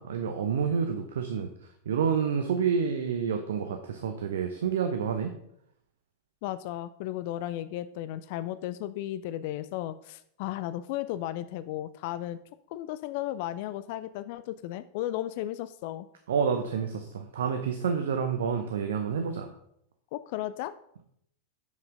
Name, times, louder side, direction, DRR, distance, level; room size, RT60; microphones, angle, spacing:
voice 1, 0.0-1.5 1.9-5.3 16.3-19.5, right 6 dB, 60° right, 6 dB, 0.8 m, -28 dB
voice 2, 6.4-12.4 12.7-16.1 20.1-20.7, left 13 dB, 50° left, 14 dB, 0.3 m, -34 dB
7.5 x 6.1 x 4.9 m, 0.71 s
figure-of-eight pair, 90°, 0 cm